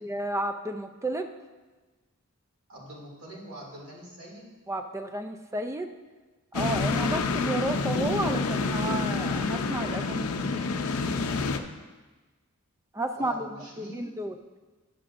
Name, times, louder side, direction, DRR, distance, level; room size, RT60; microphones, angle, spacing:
voice 1, 0.0-1.3 4.7-5.9 6.5-10.4 12.9-13.5 13.8-14.4, right 1 dB, 15° right, 7 dB, 0.4 m, -32 dB
voice 2, 2.7-4.5 13.1-14.0, right 1 dB, 70° right, -5 dB, 2.5 m, -44 dB
sound 1, 6.5-11.6, left 4 dB, 75° left, 0.5 m, -28 dB
10.5 x 7.6 x 2.5 m, 1.3 s
head